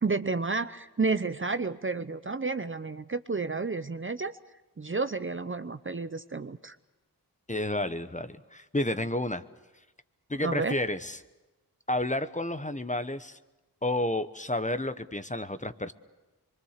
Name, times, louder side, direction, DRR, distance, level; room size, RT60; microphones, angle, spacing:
voice 1, 0.0-4.4 4.8-6.8 10.4-10.8, right 4 dB, 30° right, 11 dB, 0.7 m, -31 dB
voice 2, 7.5-9.4 10.3-11.2 11.9-13.4 13.8-15.9, left 1 dB, 20° left, 11 dB, 1.0 m, -31 dB
24.5 x 23.5 x 6.6 m, 1.1 s
cardioid pair, 45°, 41 cm